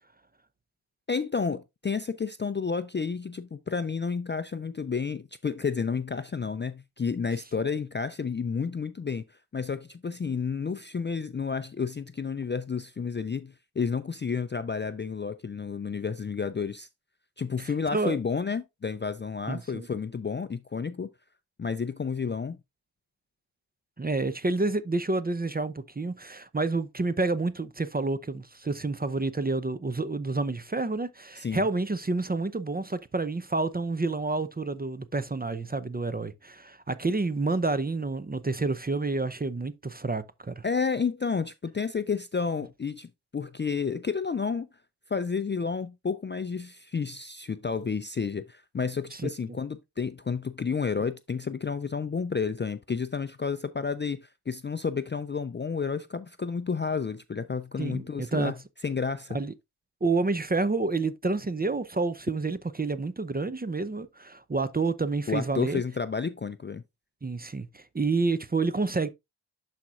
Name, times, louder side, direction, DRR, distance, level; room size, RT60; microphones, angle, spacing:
voice 1, 1.1-9.2 9.5-16.9 17.4-21.1 21.6-22.6 31.4-31.7 40.6-44.7 45.1-58.6 58.8-59.4 65.3-66.8, left 5 dB, 25° left, 0.5 m, -31 dB
voice 2, 17.6-18.2 19.5-19.9 24.0-40.6 49.1-49.3 57.8-58.5 59.3-59.5 60.0-65.8 67.2-69.1, right 3 dB, 20° right, 0.7 m, -29 dB
11.5 x 4.3 x 2.4 m
supercardioid pair, 45°, 49 cm